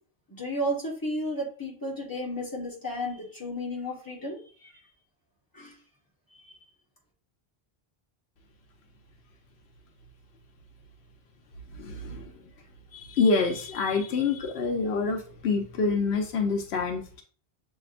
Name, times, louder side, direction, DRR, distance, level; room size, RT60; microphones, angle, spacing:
voice 1, 0.3-4.7 5.5-5.7 6.5-6.6, equal, 20° left, -3 dB, 1.4 m, -33 dB
voice 2, 11.7-12.3 12.9-17.2, left 4 dB, 85° left, 3 dB, 1.0 m, -27 dB
6.9 x 2.8 x 2.5 m, 0.40 s
omnidirectional pair, 1.0 m